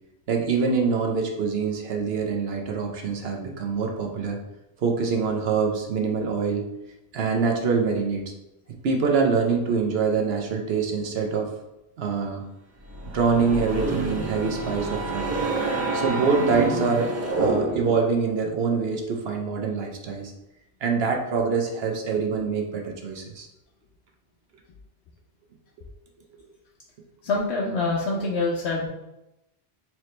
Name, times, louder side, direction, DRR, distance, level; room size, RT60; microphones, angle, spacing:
voice 1, 0.3-4.4 4.8-6.7 7.1-8.2 8.8-11.5 12.0-12.4 13.1-15.4 15.9-17.1 17.4-20.3 20.8-23.5, right 5 dB, 70° right, 2 dB, 0.9 m, -25 dB
sound 1, 12.8-18.1, right 3 dB, 20° right, 0.4 m, -28 dB
voice 2, 27.2-28.9, left 3 dB, 80° left, -3 dB, 0.9 m, -25 dB
4.4 x 2.9 x 3.2 m, 0.92 s
omnidirectional pair, 1.1 m